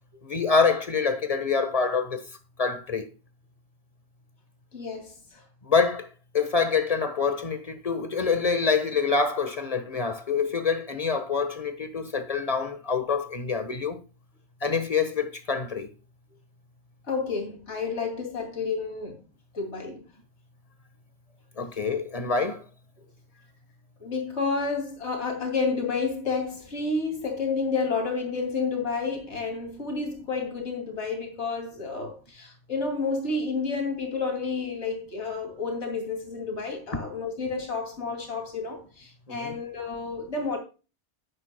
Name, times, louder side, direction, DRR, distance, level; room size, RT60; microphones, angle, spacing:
voice 1, 0.2-2.2 2.6-3.1 5.6-6.1 6.3-14.0 14.6-15.9 21.6-22.6 39.3-39.5, left 5 dB, 35° left, 1.3 m, -26 dB
voice 2, 4.7-5.4 17.1-19.2 19.5-20.0 24.0-40.6, left 4 dB, 75° left, 2.9 m, -30 dB
11.0 x 9.5 x 2.2 m
omnidirectional pair, 1.2 m